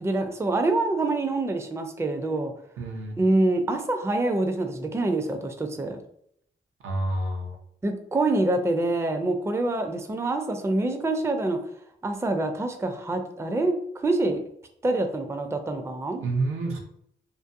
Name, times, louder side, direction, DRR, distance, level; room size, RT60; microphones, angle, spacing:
voice 1, 0.0-2.5 3.2-6.0 7.8-11.6 12.0-13.7 14.0-14.4 14.8-16.2, right 2 dB, 15° right, 5 dB, 0.4 m, -26 dB
voice 2, 2.8-3.2 6.8-7.6 16.2-16.8, right 2 dB, 85° right, 2 dB, 0.6 m, -28 dB
2.5 x 2.2 x 2.5 m, 0.70 s
cardioid pair, 45°, 21 cm